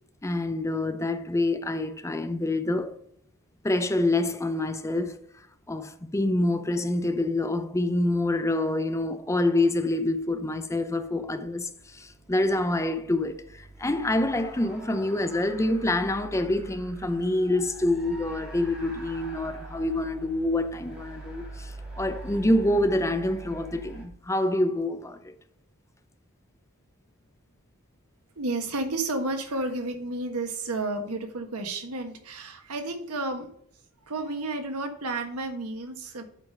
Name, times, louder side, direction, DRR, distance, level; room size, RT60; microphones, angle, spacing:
voice 1, 0.2-3.0 3.6-5.2 5.7-25.3, left 1 dB, 15° left, 0.6 m, -26 dB
sound 1, 10.1-24.1, right 2 dB, 5° right, 2.5 m, -44 dB
voice 2, 28.4-33.5 34.0-36.2, right 2 dB, 90° right, 1.5 m, -31 dB
8.2 x 5.0 x 5.4 m
head